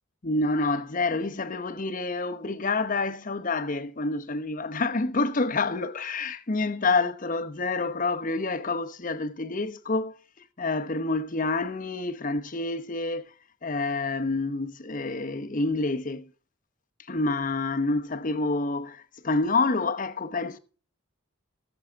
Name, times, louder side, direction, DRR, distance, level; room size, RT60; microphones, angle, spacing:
voice 1, 0.2-10.2 10.6-13.2 13.6-16.3 17.1-20.6, left 3 dB, 40° left, 0.9 m, -28 dB
19.0 x 7.0 x 3.4 m
head